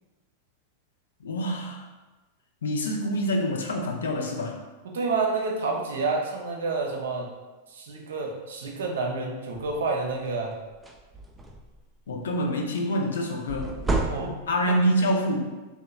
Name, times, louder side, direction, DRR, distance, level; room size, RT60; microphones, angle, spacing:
voice 1, 1.2-1.9 2.6-4.6 12.1-13.7 14.5-15.5, equal, 80° left, 1 dB, 0.4 m, -26 dB
voice 2, 4.9-7.3 7.7-10.6 14.1-14.3 14.6-14.7, right 3 dB, 75° right, 1 dB, 0.5 m, -29 dB
sound 1, 9.5-9.8 10.3-10.4 10.7-11.8 13.5-14.7, right 2 dB, 10° right, 0.3 m, -30 dB
3.0 x 2.1 x 2.2 m, 1.2 s
hypercardioid pair, 100°, 0 cm